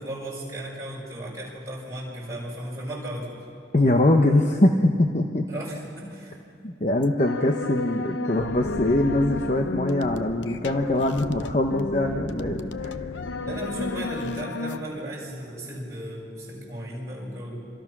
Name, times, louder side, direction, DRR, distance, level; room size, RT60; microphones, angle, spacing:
voice 1, 0.0-3.4 5.5-6.4 13.4-17.6, right 1 dB, 15° right, -4 dB, 6.2 m, -35 dB
voice 2, 3.7-5.5 6.6-13.0, left 1 dB, 40° left, 3 dB, 1.0 m, -22 dB
sound 1, 7.0-14.8, left 3 dB, 75° left, 0.7 m, -32 dB
26.5 x 26.0 x 6.1 m, 2.4 s
head